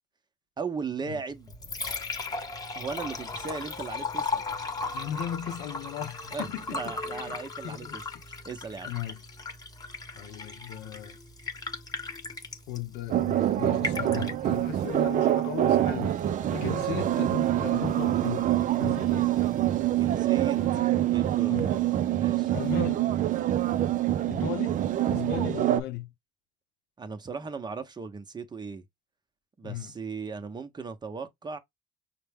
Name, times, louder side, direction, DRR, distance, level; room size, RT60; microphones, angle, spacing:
voice 1, 0.6-1.5 2.7-4.4 6.3-8.0 8.3-8.9 16.6-16.8 19.9-20.6 21.0-22.5 27.0-28.8 29.6-31.6, right 5 dB, 25° right, 0.8 m, -37 dB
Liquid, 1.3-20.3, left 3 dB, 25° left, 1.1 m, -38 dB
voice 2, 4.9-7.4 7.6-8.0 8.8-9.2 10.2-11.2 12.7-16.2 16.5-18.5 18.8-19.3 20.6-21.0 21.5-21.7 22.5-23.1 24.3-24.8 25.1-26.1 29.6-29.9, left 11 dB, 90° left, 0.8 m, -36 dB
sound 1, 13.1-25.8, right 13 dB, 50° right, 0.4 m, -25 dB
5.8 x 2.2 x 3.4 m
cardioid pair, 110°, 17 cm